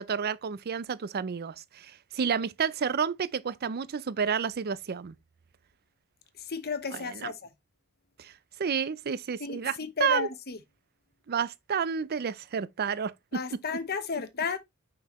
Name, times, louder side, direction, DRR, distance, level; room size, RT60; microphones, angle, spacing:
voice 1, 0.0-5.2 6.9-7.3 8.2-8.3 8.6-10.3 11.3-13.1, right 7 dB, 45° right, 0.5 m, -30 dB
voice 2, 6.4-7.4 9.4-10.6 13.3-14.6, left 5 dB, 50° left, 1.0 m, -33 dB
5.8 x 5.6 x 3.0 m
head